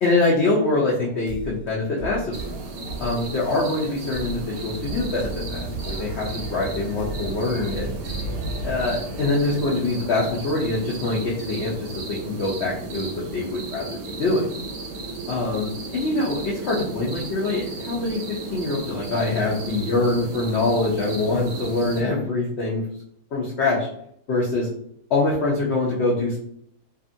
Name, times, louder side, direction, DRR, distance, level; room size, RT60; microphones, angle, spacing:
voice 1, 0.0-2.5 3.0-7.9 8.6-14.4 15.3-22.8 23.3-23.9 24.3-24.7 25.1-26.4, left 2 dB, 80° left, -4 dB, 0.6 m, -24 dB
sound 1, 1.3-9.7, right 2 dB, 85° right, 0.5 m, -37 dB
sound 2, 2.3-22.0, right 2 dB, 70° right, 0.9 m, -34 dB
2.6 x 2.5 x 2.5 m, 0.70 s
omnidirectional pair, 1.8 m